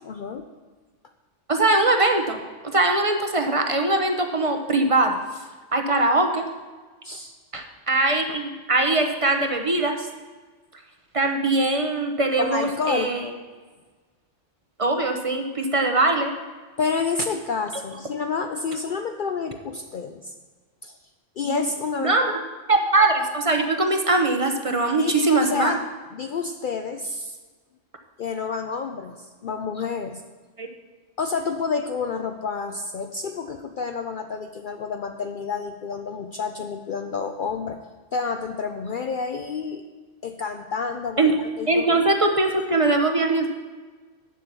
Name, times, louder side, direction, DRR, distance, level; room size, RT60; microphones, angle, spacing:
voice 1, 0.0-0.4 7.0-7.4 12.4-13.2 16.8-20.3 20.8-21.0 21.4-22.3 25.0-25.8 26.1-27.4 28.2-30.2 31.2-37.8 38.1-39.8 40.2-42.0, left 5 dB, 55° left, 6 dB, 0.6 m, -29 dB
voice 2, 1.5-5.4 5.7-6.5 7.5-10.1 11.1-13.3 14.8-16.3 21.4-21.6 22.0-22.4 22.7-25.8 30.6-30.7 41.2-41.3 41.7-43.5, right 2 dB, 30° right, 4 dB, 0.8 m, -22 dB
8.6 x 7.5 x 6.7 m, 1.4 s
omnidirectional pair, 1.2 m